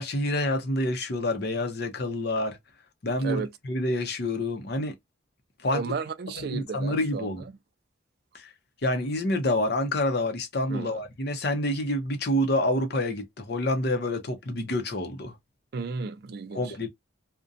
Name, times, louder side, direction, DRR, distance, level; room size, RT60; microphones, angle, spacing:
voice 1, 0.0-2.6 3.0-4.9 5.6-5.9 6.4-7.4 8.3-8.5 8.8-15.3 16.5-16.9, left 1 dB, 50° left, 0.6 m, -28 dB
voice 2, 3.2-3.5 5.7-7.6 10.7-11.0 15.7-16.7, right 4 dB, 50° right, 0.3 m, -34 dB
2.5 x 2.1 x 2.5 m
head